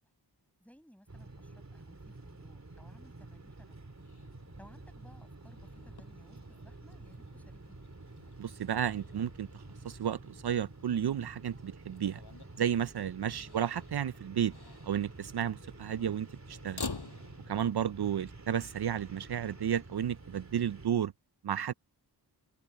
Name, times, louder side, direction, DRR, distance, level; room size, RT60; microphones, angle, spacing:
voice 1, 0.6-3.8 4.5-7.8 13.4-13.6, equal, 5° left, 7.5 m, -60 dB
sound 1, 1.1-20.9, right 2 dB, 40° right, 3.8 m, -50 dB
Motor vehicle (road), 4.0-19.8, left 4 dB, 70° left, 7.6 m, -50 dB
voice 2, 8.4-12.2 12.6-14.5 14.8-16.9 17.5-21.1 21.4-21.7, right 9 dB, 70° right, 0.5 m, -32 dB
wide cardioid pair, 60°, 40 cm